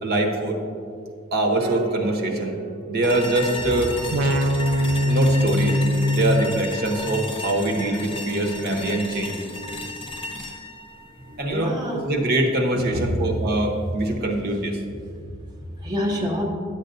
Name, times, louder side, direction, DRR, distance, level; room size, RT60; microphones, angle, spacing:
voice 1, 0.0-0.6 1.3-2.5 2.9-3.9 5.1-5.8 6.1-9.4 11.4-11.8 12.0-14.8, right 2 dB, 55° right, 1 dB, 0.9 m, -23 dB
sound 1, 1.6-3.7 4.1-7.3, equal, 70° right, 0.4 m, -24 dB
sound 2, 3.0-12.1, left 2 dB, 25° left, 0.6 m, -34 dB
voice 2, 9.4-9.8 11.3-12.1 12.7-13.0 15.8-16.4, left 1 dB, 20° right, -2 dB, 0.7 m, -28 dB
10.5 x 7.9 x 2.6 m, 2.3 s
head